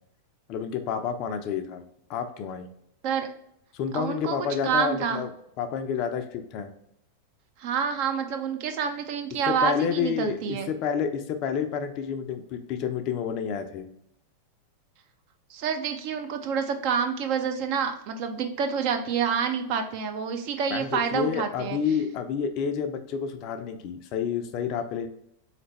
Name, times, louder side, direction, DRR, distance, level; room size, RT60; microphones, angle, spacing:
voice 1, 0.5-1.8 2.1-2.7 3.7-5.3 5.6-6.7 9.5-13.8 20.7-25.1, left 7 dB, 40° left, 8 dB, 0.5 m, -29 dB
voice 2, 3.9-5.2 7.6-10.7 15.5-21.8, right 6 dB, 45° right, 5 dB, 0.6 m, -28 dB
3.9 x 3.2 x 3.1 m, 0.73 s
figure-of-eight pair, 90°, 0 cm